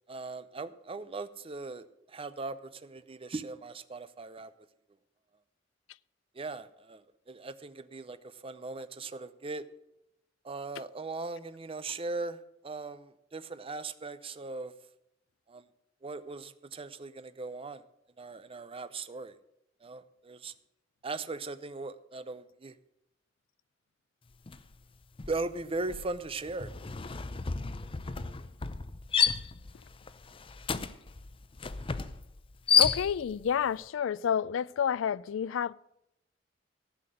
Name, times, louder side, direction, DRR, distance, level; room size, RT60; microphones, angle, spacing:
voice 1, 0.1-4.5 6.3-9.6 10.4-14.7 15.5-15.7 16.0-17.8 18.2-19.4 19.8-20.5 21.0-22.8 25.3-26.7, right 3 dB, 30° right, 0.6 m, -39 dB
sound 1, 24.5-24.7 25.0-33.5, left 7 dB, 30° left, 0.5 m, -31 dB
voice 2, 32.8-35.7, left 8 dB, 85° left, 0.3 m, -29 dB
15.0 x 5.9 x 7.8 m
head